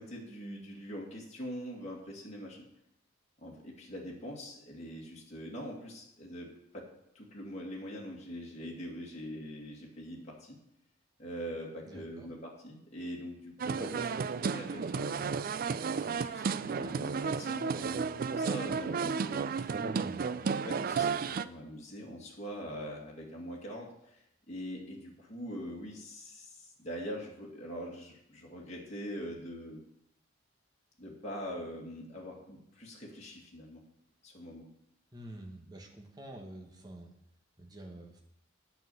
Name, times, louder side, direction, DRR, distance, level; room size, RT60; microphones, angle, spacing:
voice 1, 0.0-2.6 3.4-6.9 7.1-10.6 11.2-15.2 16.0-19.7 20.2-20.4 20.6-29.8 31.0-33.8 34.2-34.7, equal, 35° left, -3 dB, 2.3 m, -43 dB
voice 2, 11.9-12.3 19.8-20.3 35.1-37.1 37.6-38.2, right 1 dB, 20° right, 1 dB, 1.4 m, -47 dB
sound 1, 13.6-21.4, right 5 dB, 45° right, 0.3 m, -33 dB
8.9 x 5.6 x 8.0 m, 0.79 s
head